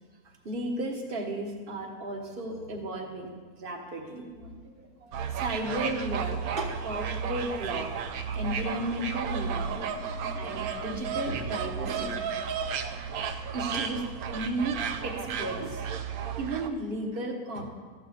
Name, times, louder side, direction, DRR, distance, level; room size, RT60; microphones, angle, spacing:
voice 1, 0.4-7.9 8.3-9.9 10.3-12.4 13.5-14.0 14.3-16.0 16.4-17.6, right 1 dB, 40° right, 2 dB, 1.4 m, -34 dB
sound 1, 5.1-16.7, right 6 dB, 75° right, 1.1 m, -33 dB
13.0 x 5.0 x 8.1 m, 1.5 s
omnidirectional pair, 1.6 m